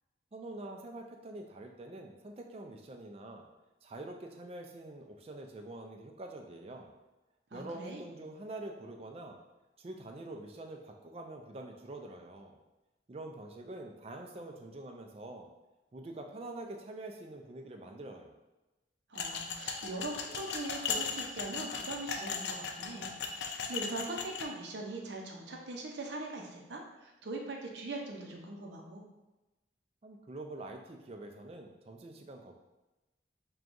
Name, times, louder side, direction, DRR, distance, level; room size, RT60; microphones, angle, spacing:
voice 1, 0.3-3.5 3.8-6.9 7.5-9.4 9.8-12.6 13.1-15.5 15.9-18.3 30.0-32.6, right 2 dB, 35° right, 3 dB, 0.4 m, -45 dB
voice 2, 7.5-8.1 19.1-29.0, right 2 dB, 75° right, 1 dB, 0.6 m, -41 dB
sound 1, 19.2-24.5, left 5 dB, 75° left, 0.4 m, -37 dB
6.0 x 2.3 x 2.6 m, 1.1 s
head